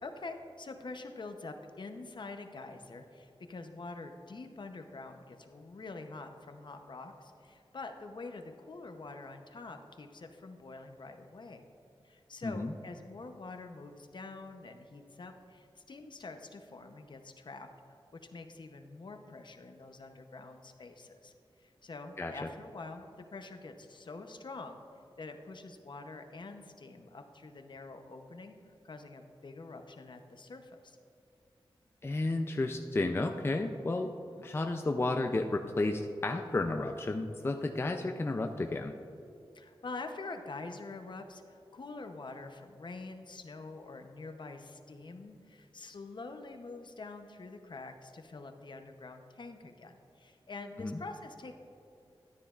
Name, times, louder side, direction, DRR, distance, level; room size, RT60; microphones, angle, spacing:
voice 1, 0.0-11.6 12.0-17.7 18.1-21.3 21.6-24.8 25.2-28.5 28.8-31.0 34.2-34.5 39.5-51.5, left 3 dB, 55° left, 6 dB, 0.7 m, -46 dB
voice 2, 32.0-34.1 34.4-38.9 50.8-50.9, left 2 dB, 25° left, 4 dB, 0.4 m, -32 dB
13.0 x 9.4 x 2.4 m, 2.7 s
wide cardioid pair, 105°, 10 cm